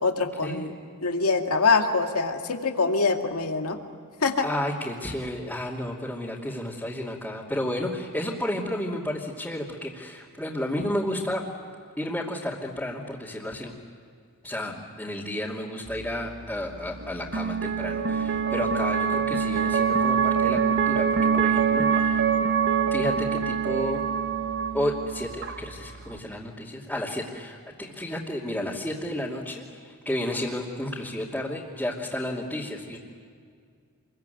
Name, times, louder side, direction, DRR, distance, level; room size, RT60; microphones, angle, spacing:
voice 1, 0.0-0.7 1.0-3.8 4.2-4.5, left 4 dB, 85° left, 4 dB, 2.2 m, -24 dB
voice 2, 4.4-11.5 12.0-13.8 14.4-21.1 21.3-22.3 22.9-24.0 24.7-33.0, left 1 dB, 5° left, -6 dB, 2.7 m, -32 dB
sound 1, 15.9-26.2, right 6 dB, 55° right, 1.2 m, -25 dB
28.0 x 22.5 x 9.3 m, 2.2 s
head